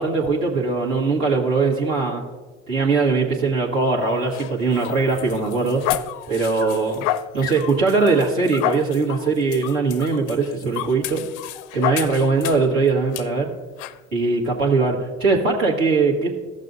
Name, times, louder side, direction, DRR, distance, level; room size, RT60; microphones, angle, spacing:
voice 1, 0.0-2.2 2.7-5.8 6.3-7.1 7.3-11.2 11.7-13.5 14.1-16.3, right 4 dB, 85° right, -3 dB, 1.6 m, -21 dB
sound 1, 4.0-12.7 13.1-13.3 13.8-14.0, left 13 dB, 70° left, 0.5 m, -30 dB
14.0 x 6.5 x 2.6 m, 1.3 s
hypercardioid pair, 65°, 38 cm